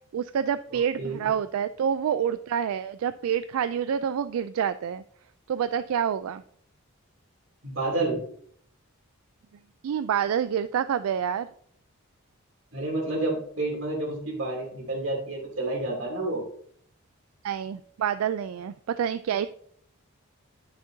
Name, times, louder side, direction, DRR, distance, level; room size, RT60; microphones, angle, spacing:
voice 1, 0.1-5.0 5.5-6.4 9.8-11.5 17.4-19.5, right 8 dB, 85° right, 12 dB, 0.3 m, -27 dB
voice 2, 0.7-1.2 7.6-8.2 12.7-16.4, right 2 dB, 60° right, -1 dB, 2.8 m, -30 dB
10.5 x 6.4 x 2.7 m, 0.62 s
head